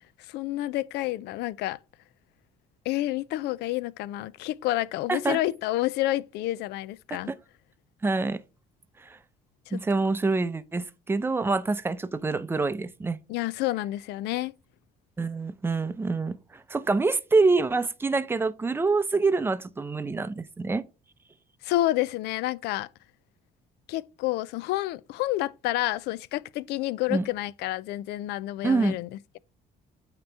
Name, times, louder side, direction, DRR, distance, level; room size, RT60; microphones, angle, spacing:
voice 1, 0.2-1.8 2.9-7.3 9.7-9.8 13.3-14.5 21.6-22.9 23.9-29.4, left 16 dB, 80° left, 0.4 m, -29 dB
voice 2, 8.0-8.4 9.0-9.2 9.7-13.2 15.2-20.8 27.1-27.2 28.6-29.0, right 3 dB, 15° right, 0.6 m, -26 dB
8.6 x 3.0 x 4.5 m
cardioid pair, 110°, 17 cm